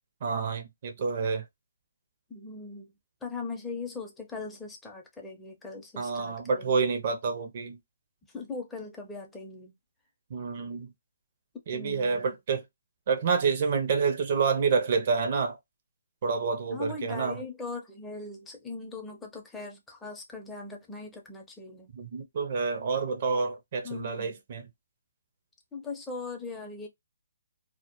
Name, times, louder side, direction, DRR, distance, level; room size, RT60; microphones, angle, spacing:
voice 1, 0.2-1.4 6.0-7.8 10.3-10.9 11.7-12.6 13.1-15.6 16.2-17.4 21.9-24.7, right 5 dB, 45° right, 0.5 m, -28 dB
voice 2, 2.3-2.9 3.2-6.7 8.3-9.7 11.7-12.3 16.7-21.9 23.8-24.4 25.7-26.9, left 3 dB, 10° left, 0.6 m, -40 dB
2.1 x 2.0 x 2.8 m
hypercardioid pair, 145°, 0 cm